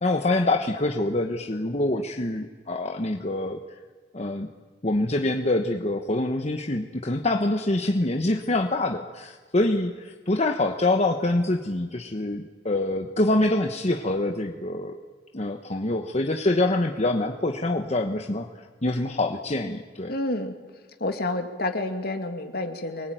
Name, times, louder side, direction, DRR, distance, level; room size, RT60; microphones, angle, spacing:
voice 1, 0.0-3.6 4.1-4.5 4.8-15.0 15.3-18.5 18.8-20.1, left 2 dB, 40° left, 4 dB, 1.2 m, -25 dB
voice 2, 20.1-20.5 21.0-23.1, left 2 dB, 60° left, 6 dB, 2.4 m, -29 dB
24.5 x 21.5 x 9.2 m, 1.5 s
head